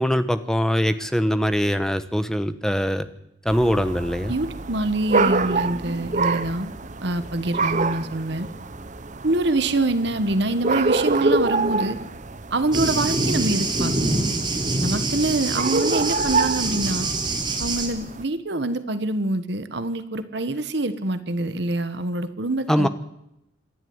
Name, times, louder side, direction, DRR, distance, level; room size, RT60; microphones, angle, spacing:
voice 1, 0.0-3.0 3.4-4.3 22.7-22.9, equal, 5° left, 10 dB, 1.2 m, -22 dB
sound 1, 3.5-18.2, right 3 dB, 40° right, 0.9 m, -27 dB
voice 2, 4.3-6.7 7.0-8.5 9.2-12.0 12.5-14.2 14.8-17.1 17.6-22.9, right 2 dB, 55° right, 12 dB, 1.3 m, -25 dB
Thunder, 12.7-17.9, right 2 dB, 20° right, 3.7 m, -25 dB
27.0 x 11.5 x 9.5 m, 0.83 s
head